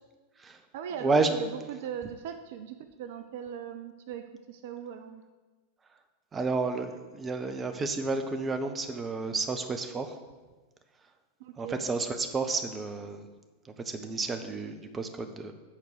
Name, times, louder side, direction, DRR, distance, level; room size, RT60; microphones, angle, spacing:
voice 1, 0.7-5.2 11.4-11.8, right 9 dB, 50° right, 8 dB, 0.4 m, -39 dB
voice 2, 6.3-10.2 11.6-13.3 13.6-15.5, right 3 dB, 20° right, 7 dB, 0.7 m, -31 dB
7.2 x 4.6 x 6.9 m, 1.3 s
figure-of-eight pair, 90°, 0 cm